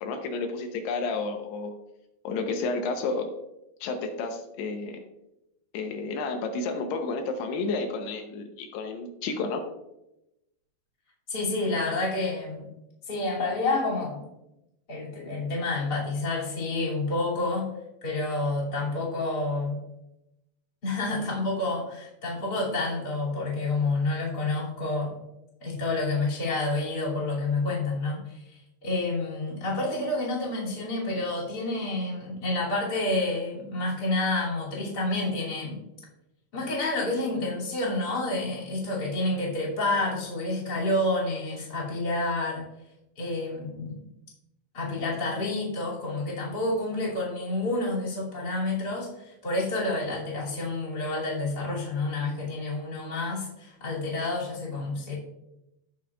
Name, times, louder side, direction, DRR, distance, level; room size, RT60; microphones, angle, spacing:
voice 1, 0.0-1.7 2.2-3.3 3.8-5.0 5.7-9.6, left 3 dB, 85° left, 4 dB, 2.9 m, -31 dB
voice 2, 11.3-12.7 13.1-14.2 14.9-17.7 18.0-19.8 20.8-25.2 25.6-35.8 36.5-42.6 43.2-44.0 44.7-55.1, left 2 dB, 25° left, -6 dB, 2.7 m, -29 dB
15.5 x 5.7 x 2.4 m, 0.89 s
omnidirectional pair, 4.7 m